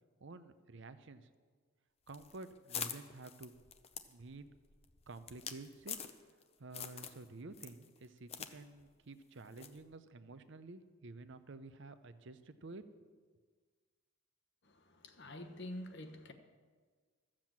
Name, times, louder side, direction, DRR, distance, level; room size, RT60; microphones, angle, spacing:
voice 1, 0.2-1.3 2.1-3.6 4.1-4.5 5.1-6.0 6.6-12.8, right 3 dB, 55° right, 11 dB, 0.6 m, -51 dB
sound 1, 2.1-6.4 6.7-7.2 7.5-8.5 8.8-8.9 9.6-9.8, left 8 dB, 30° left, 0.6 m, -45 dB
voice 2, 14.6-16.3, left 1 dB, 55° left, 7 dB, 1.1 m, -47 dB
14.0 x 7.6 x 7.4 m, 1.5 s
head